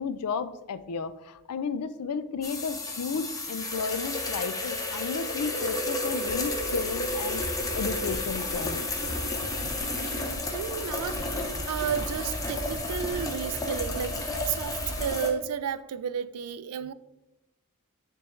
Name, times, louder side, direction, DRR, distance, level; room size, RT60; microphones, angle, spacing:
voice 1, 0.0-7.4 7.7-8.9, left 5 dB, 85° left, 0.4 m, -33 dB
sound 1, 2.4-15.3, left 2 dB, 15° left, 0.7 m, -32 dB
sound 2, 6.2-15.1, right 1 dB, 45° right, 0.9 m, -39 dB
voice 2, 10.5-16.9, right 8 dB, 75° right, 0.4 m, -32 dB
9.7 x 3.5 x 3.2 m
head